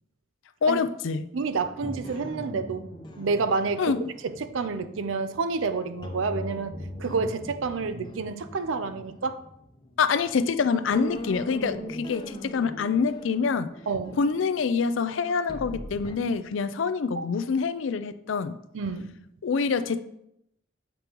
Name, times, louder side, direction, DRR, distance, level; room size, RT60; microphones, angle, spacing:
voice 1, 0.6-1.2 3.8-4.0 10.0-13.7 14.2-18.6 19.4-20.0, left 5 dB, 75° left, 13 dB, 0.4 m, -26 dB
voice 2, 1.3-3.9 4.2-9.4 13.9-14.2 17.1-17.3 18.7-19.2, right 4 dB, 90° right, 11 dB, 0.5 m, -29 dB
sound 1, 1.8-5.6 6.0-10.5 10.9-16.2, equal, 25° left, 0.7 m, -40 dB
8.1 x 5.3 x 3.0 m, 0.80 s
head